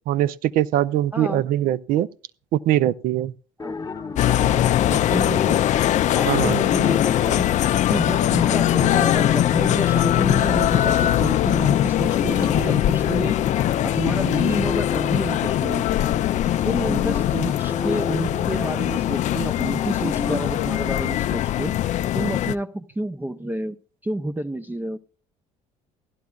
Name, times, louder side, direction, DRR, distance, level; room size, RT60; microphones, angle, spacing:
voice 1, 0.1-2.1 2.5-3.3 6.3-6.6, right 12 dB, 60° right, 0.5 m, -22 dB
voice 2, 1.1-1.4 3.6-3.8 4.9-5.6 6.1-7.5 7.9-13.4 13.8-15.8 16.4-21.8 22.1-23.8 24.0-25.0, right 1 dB, 10° right, 0.5 m, -29 dB
sound 1, 3.6-20.4, left 6 dB, 25° left, 0.9 m, -32 dB
sound 2, 4.2-22.5, left 12 dB, 45° left, 0.4 m, -21 dB
16.0 x 11.5 x 2.3 m
hypercardioid pair, 75°, 17 cm